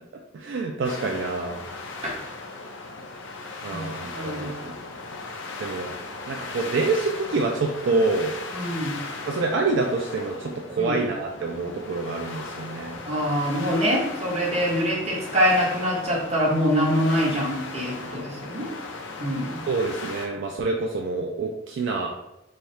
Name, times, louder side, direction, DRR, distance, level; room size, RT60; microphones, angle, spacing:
voice 1, 0.3-1.6 3.6-4.7 5.6-6.0 6.3-8.3 9.3-13.0 19.7-22.1, right 3 dB, 65° right, 1 dB, 0.4 m, -27 dB
sound 1, 0.8-20.3, left 3 dB, 65° left, 0.5 m, -37 dB
voice 2, 4.1-4.5 8.5-8.9 10.8-11.0 13.0-18.7 19.2-19.6, equal, 35° right, -4 dB, 1.1 m, -24 dB
3.3 x 2.3 x 4.2 m, 0.94 s
head